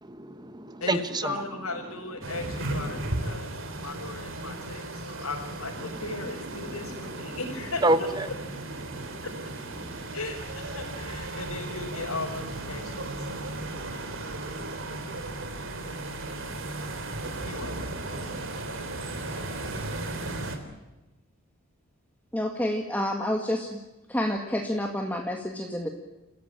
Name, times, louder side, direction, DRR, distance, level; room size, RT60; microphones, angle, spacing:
voice 1, 0.0-1.3 7.8-8.3 8.9-9.2 9.8-10.1 17.2-17.5 18.1-18.4, right 2 dB, 20° right, 11 dB, 1.2 m, -29 dB
voice 2, 0.8-8.3 9.2-9.3 10.1-13.3 17.4-17.7, left 3 dB, 90° left, -3 dB, 5.3 m, -37 dB
sound 1, 2.2-20.6, right 2 dB, 60° right, 3.7 m, -35 dB
voice 3, 22.3-23.8 24.1-25.9, left 1 dB, 10° left, 2 dB, 1.9 m, -29 dB
29.5 x 16.0 x 8.9 m, 1.1 s
head